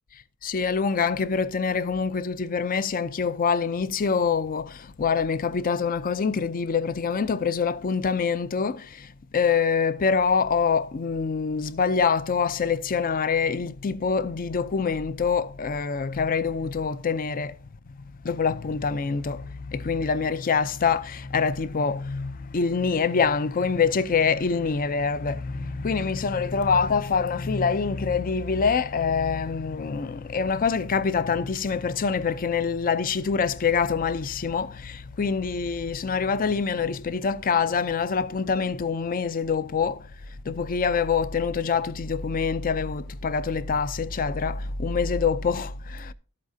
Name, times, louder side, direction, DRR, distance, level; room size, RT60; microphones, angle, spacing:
voice 1, 0.1-17.6 17.9-46.1, left 5 dB, 40° left, 0.5 m, -25 dB
12.5 x 8.4 x 2.7 m
head